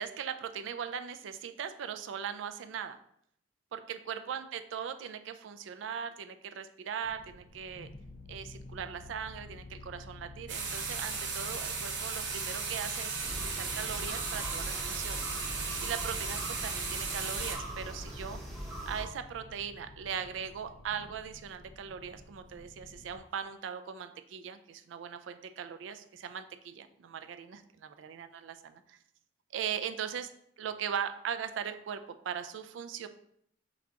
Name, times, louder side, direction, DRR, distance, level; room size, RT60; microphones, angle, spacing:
voice 1, 0.0-3.0 3.7-7.9 8.3-15.3 15.8-18.4 18.9-29.0 29.5-30.3 30.6-33.1, right 7 dB, 90° right, 9 dB, 0.3 m, -39 dB
sound 1, 7.0-23.2, left 2 dB, 45° left, 0.3 m, -51 dB
sound 2, 10.5-17.6, right 5 dB, 65° right, 0.7 m, -36 dB
sound 3, 13.2-19.1, equal, ahead, 0.8 m, -41 dB
5.8 x 2.3 x 2.8 m, 0.69 s
head